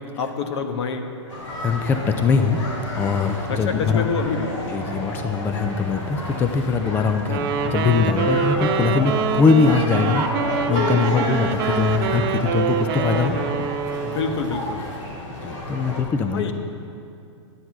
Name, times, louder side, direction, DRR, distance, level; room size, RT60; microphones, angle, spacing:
voice 1, 0.2-1.1 3.5-4.5 14.0-14.9 16.3-16.5, left 5 dB, 60° left, 6 dB, 1.2 m, -26 dB
sound 1, 1.3-16.0, left 1 dB, 80° left, 3.6 m, -31 dB
voice 2, 1.6-4.1 4.7-10.3 10.7-13.4 15.4-16.5, left 5 dB, 15° left, 7 dB, 0.4 m, -22 dB
Wind instrument woodwind instrument, 7.3-14.5, right 6 dB, 45° right, 1.0 m, -25 dB
11.0 x 10.0 x 6.0 m, 2.5 s
hypercardioid pair, 145°, 16 cm